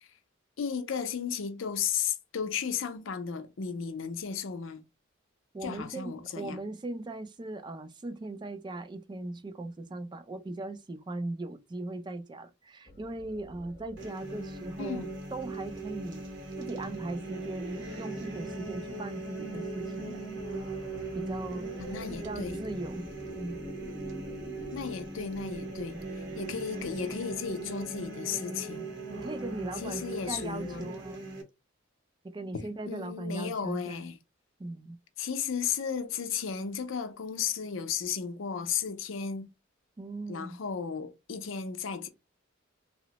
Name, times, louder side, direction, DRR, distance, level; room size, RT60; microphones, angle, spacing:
voice 1, 0.6-4.8 5.6-6.6 14.8-15.1 21.8-22.6 24.7-26.0 26.4-28.9 29.8-30.9 32.9-34.2 35.2-39.5 40.3-42.1, left 6 dB, 80° left, 0.5 m, -34 dB
voice 2, 5.5-16.2 16.6-20.3 21.1-23.1 23.3-23.6 28.3-31.3 32.3-34.0 34.6-35.0 40.0-40.6, right 2 dB, 20° right, 0.3 m, -39 dB
sound 1, 12.9-28.1, left 2 dB, 25° left, 0.6 m, -49 dB
sound 2, 14.0-31.4, right 3 dB, 60° right, 0.7 m, -39 dB
2.9 x 2.0 x 2.8 m
head